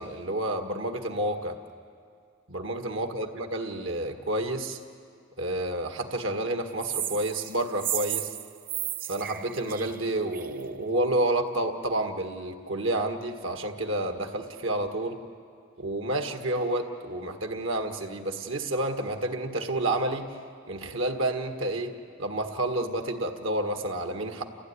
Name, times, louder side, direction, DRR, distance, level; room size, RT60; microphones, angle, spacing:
voice 1, 0.0-1.6 2.5-4.8 5.4-8.3 9.1-15.2 15.8-20.3 20.7-21.9 22.2-24.4, right 1 dB, 85° right, 5 dB, 1.8 m, -29 dB
sound 1, 6.8-10.6, right 10 dB, 45° right, 0.7 m, -33 dB
29.5 x 16.0 x 9.8 m, 2.2 s
head